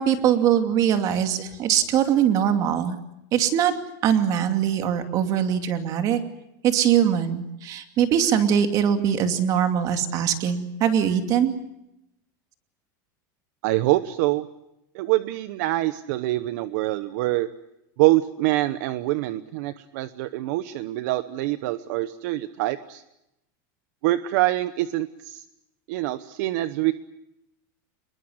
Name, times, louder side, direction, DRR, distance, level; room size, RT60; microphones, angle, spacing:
voice 1, 0.0-3.0 3.3-3.7 4.0-6.2 6.6-11.5, right 9 dB, 35° right, 7 dB, 2.6 m, -22 dB
voice 2, 13.6-14.5 14.9-17.5 18.0-23.0 24.0-25.4 25.9-26.9, right 17 dB, 60° right, 13 dB, 1.0 m, -25 dB
27.0 x 22.0 x 7.9 m, 0.86 s
supercardioid pair, 165°, 11 cm